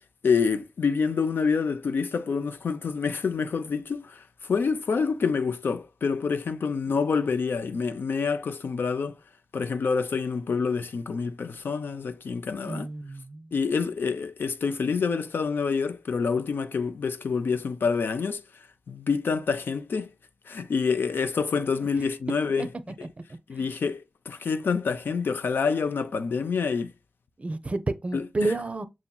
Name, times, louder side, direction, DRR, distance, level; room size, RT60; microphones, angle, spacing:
voice 1, 0.2-9.2 9.5-12.9 13.5-18.4 18.9-20.1 20.5-22.7 23.5-26.9 28.1-28.3, left 5 dB, 70° left, 0.5 m, -27 dB
voice 2, 12.6-13.5 21.8-21.9 22.6-22.7 23.6-23.7 27.4-28.9, right 2 dB, 35° right, 0.5 m, -30 dB
6.0 x 2.7 x 2.3 m
cardioid pair, 45°, 4 cm